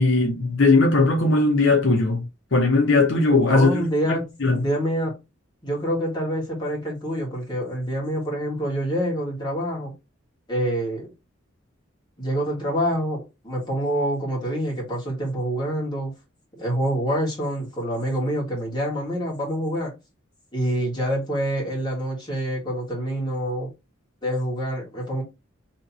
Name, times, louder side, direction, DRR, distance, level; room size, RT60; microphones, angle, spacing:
voice 1, 0.0-2.2 2.5-4.6, left 3 dB, 65° left, 0.8 m, -19 dB
voice 2, 3.5-4.2 4.6-5.1 5.6-9.9 10.5-11.1 12.2-16.1 16.5-19.9 20.5-23.7 24.2-25.2, equal, 20° left, 1.6 m, -26 dB
3.2 x 2.9 x 4.0 m
head